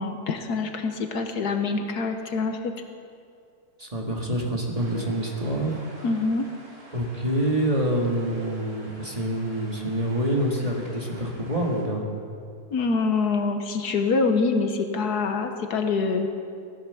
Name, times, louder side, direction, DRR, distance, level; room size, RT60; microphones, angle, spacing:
voice 1, 0.0-2.7 6.0-6.5 12.7-16.3, left 4 dB, 70° left, 5 dB, 1.5 m, -25 dB
voice 2, 3.8-5.8 6.9-12.1, right 1 dB, 20° right, -1 dB, 2.0 m, -26 dB
sound 1, 4.7-11.8, right 1 dB, 60° right, 3.8 m, -48 dB
17.0 x 12.0 x 6.9 m, 2.4 s
omnidirectional pair, 1.8 m